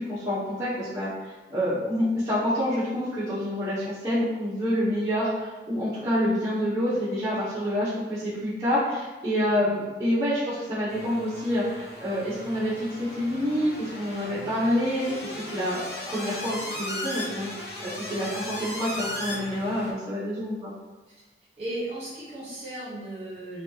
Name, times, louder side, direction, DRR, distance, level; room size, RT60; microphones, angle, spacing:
voice 1, 0.0-20.7, equal, 15° right, -14 dB, 0.9 m, -27 dB
sound 1, 10.9-19.9, left 1 dB, 65° left, 0.9 m, -37 dB
voice 2, 21.6-23.6, right 1 dB, 35° right, -7 dB, 1.3 m, -36 dB
3.2 x 2.6 x 2.8 m, 1.2 s
head